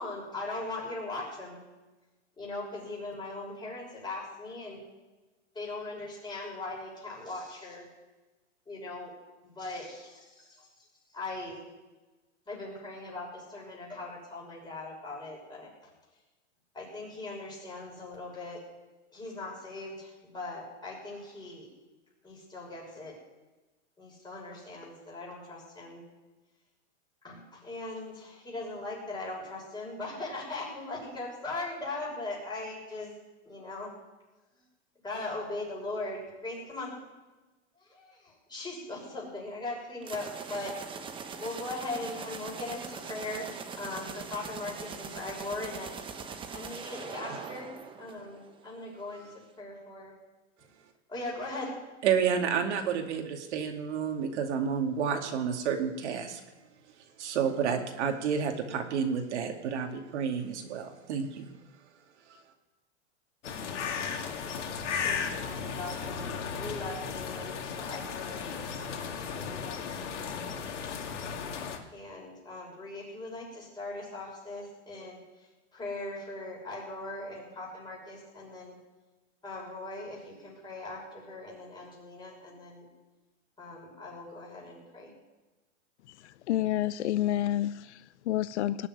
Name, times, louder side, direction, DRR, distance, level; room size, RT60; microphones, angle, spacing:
voice 1, 0.0-1.6 2.4-4.8 5.5-7.9 8.7-9.1 9.4-10.7 11.1-11.6 12.5-15.9 16.7-18.6 19.1-21.7 22.2-23.2 24.0-26.0 27.2-33.1 33.4-33.9 35.0-36.9 37.9-40.8 41.4-43.5 43.8-45.9 46.5-47.7 48.0-50.1 51.1-51.8 65.0-70.3 70.9-71.1 71.9-75.2 75.7-78.8 79.4-82.8 83.6-85.1, left 2 dB, 10° left, -3 dB, 6.4 m, -40 dB
sound 1, 40.0-48.7, right 5 dB, 15° right, 1.0 m, -42 dB
voice 2, 52.0-56.4 57.2-61.4, right 7 dB, 75° right, 4 dB, 2.6 m, -30 dB
sound 2, 63.4-71.8, left 6 dB, 90° left, 2.3 m, -35 dB
voice 3, 86.1-88.9, left 13 dB, 70° left, 15 dB, 0.7 m, -30 dB
19.0 x 7.0 x 9.8 m, 1.1 s
supercardioid pair, 150°, 35 cm